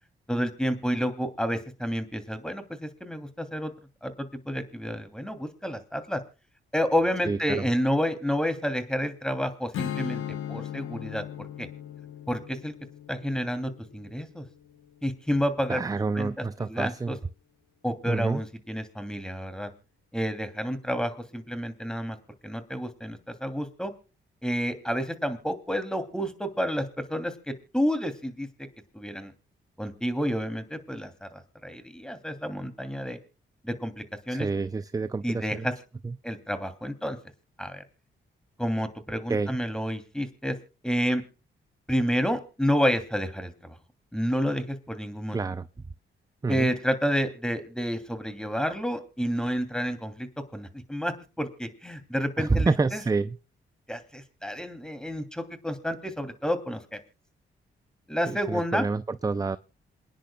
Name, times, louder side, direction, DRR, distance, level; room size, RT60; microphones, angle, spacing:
voice 1, 0.3-3.7 4.0-6.2 6.7-10.2 10.5-11.7 12.3-12.7 13.1-14.5 15.0-15.8 16.1-17.2 17.8-19.7 20.1-22.2 22.4-23.9 24.4-28.5 28.9-29.3 29.8-33.2 33.6-34.5 35.2-35.7 36.2-37.2 37.6-37.8 38.6-40.6 40.8-41.2 41.9-43.7 44.1-45.4 46.5-53.0 53.9-57.0 58.1-58.9, equal, 5° left, 9 dB, 2.9 m, -30 dB
voice 2, 7.3-7.6 15.7-17.2 18.1-18.4 34.3-35.7 36.0-36.2 39.3-39.6 45.3-45.6 46.4-46.7 52.4-53.4 58.3-59.6, right 3 dB, 15° right, 14 dB, 0.5 m, -28 dB
Strum, 9.7-15.1, left 10 dB, 80° left, 1.0 m, -38 dB
28.0 x 10.5 x 2.3 m, 0.32 s
cardioid pair, 60°, 21 cm